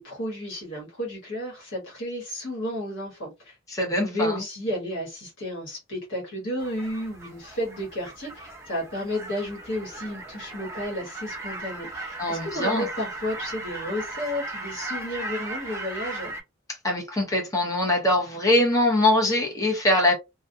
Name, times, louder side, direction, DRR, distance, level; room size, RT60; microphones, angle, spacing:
voice 1, 0.0-3.6 4.0-16.3, left 1 dB, 60° left, 1.3 m, -32 dB
voice 2, 3.7-4.4 12.2-12.9 16.8-20.1, left 1 dB, 15° left, 0.7 m, -22 dB
sound 1, 6.6-16.4, right 2 dB, 15° right, 0.4 m, -37 dB
2.4 x 2.3 x 2.6 m
head